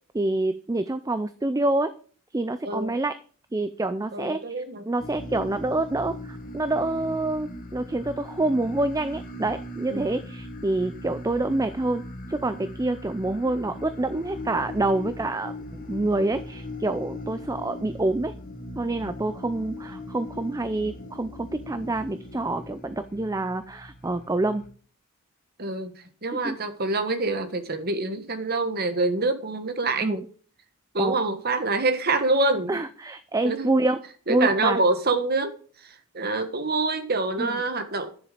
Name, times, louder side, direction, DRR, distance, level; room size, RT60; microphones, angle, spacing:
voice 1, 0.1-1.9 2.3-3.1 3.5-12.0 12.3-18.3 18.8-24.6 26.3-26.6 30.0-30.2 31.0-31.2 32.7-34.0 34.3-34.8 37.4-37.6, right 2 dB, 15° right, 0.4 m, -27 dB
voice 2, 2.6-2.9 4.1-4.8 9.9-10.1 25.6-25.9 26.2-30.2 30.9-32.8 33.4-33.7 34.3-35.5 36.1-38.1, right 3 dB, 45° right, 1.4 m, -26 dB
sound 1, 5.0-24.7, left 1 dB, 40° left, 1.4 m, -39 dB
10.5 x 7.0 x 5.1 m
head